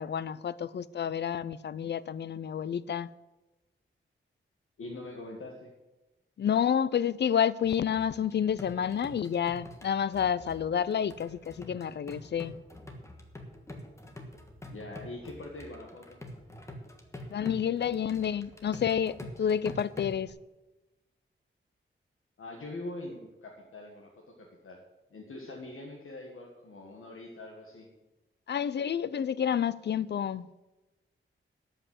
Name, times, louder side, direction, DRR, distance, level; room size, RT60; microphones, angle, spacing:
voice 1, 0.0-3.1 6.4-12.5 17.3-20.3 28.5-30.5, left 8 dB, 55° left, 0.4 m, -29 dB
voice 2, 4.8-5.7 14.7-16.2 22.4-24.8 25.1-27.9, left 2 dB, 85° left, 1.7 m, -43 dB
sound 1, 7.6-20.3, left 1 dB, 15° left, 1.3 m, -47 dB
13.0 x 5.6 x 7.9 m
wide cardioid pair, 175°, 21 cm